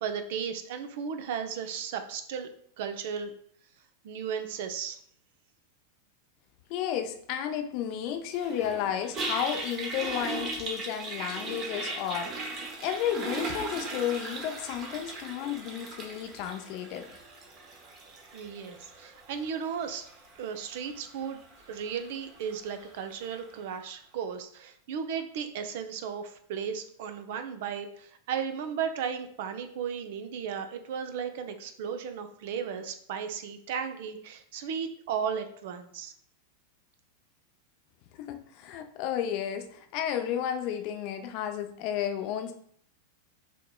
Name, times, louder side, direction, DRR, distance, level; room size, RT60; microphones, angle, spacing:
voice 1, 0.0-2.5 2.8-3.3 4.0-5.0 18.3-20.1 20.4-21.4 21.7-36.1, right 7 dB, 50° right, 8 dB, 0.5 m, -35 dB
voice 2, 6.7-17.1 38.3-42.5, left 9 dB, 45° left, 7 dB, 0.5 m, -32 dB
Toilet flush, 8.3-23.5, right 3 dB, 30° right, 0.9 m, -39 dB
5.9 x 2.9 x 2.2 m, 0.63 s
figure-of-eight pair, 90°, 0 cm